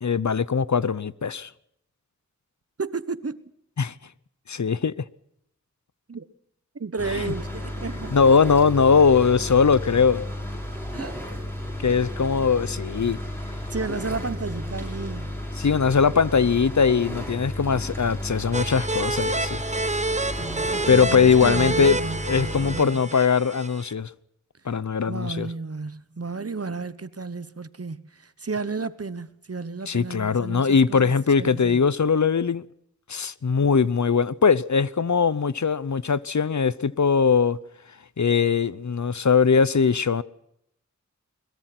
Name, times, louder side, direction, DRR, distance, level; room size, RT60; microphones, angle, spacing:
voice 1, 0.0-1.5 3.8-3.9 4.5-4.9 8.1-10.2 11.8-13.2 15.6-19.6 20.9-22.0 22.2-24.1 24.7-25.5 29.9-32.6 33.1-37.6 38.2-40.2, left 5 dB, 70° left, 0.8 m, -21 dB
voice 2, 2.8-3.5 6.1-6.2 6.8-8.2 10.9-11.3 13.7-15.4 20.3-23.0 25.0-31.9, right 4 dB, 50° right, 1.1 m, -33 dB
sound 1, 7.0-22.8, left 1 dB, 10° left, 7.5 m, -33 dB
sound 2, 18.5-23.9, right 2 dB, 25° right, 0.7 m, -28 dB
22.0 x 21.0 x 6.0 m
wide cardioid pair, 60°, 30 cm